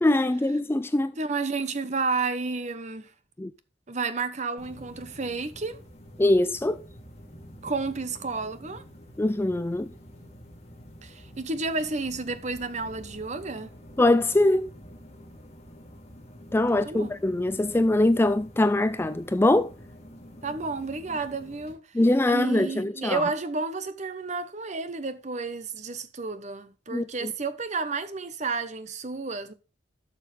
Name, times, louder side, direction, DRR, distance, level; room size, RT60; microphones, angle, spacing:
voice 1, 0.0-1.1 3.4-3.5 6.2-6.8 9.2-9.9 14.0-14.7 16.5-19.7 21.9-23.2 26.9-27.3, left 1 dB, 10° left, 0.3 m, -23 dB
voice 2, 1.2-3.1 3.9-5.8 7.6-8.8 11.0-13.7 16.7-17.1 20.4-21.8 22.3-29.5, right 4 dB, 40° right, 0.9 m, -31 dB
sound 1, 4.6-21.7, equal, 35° left, 2.2 m, -48 dB
12.0 x 6.3 x 3.3 m
head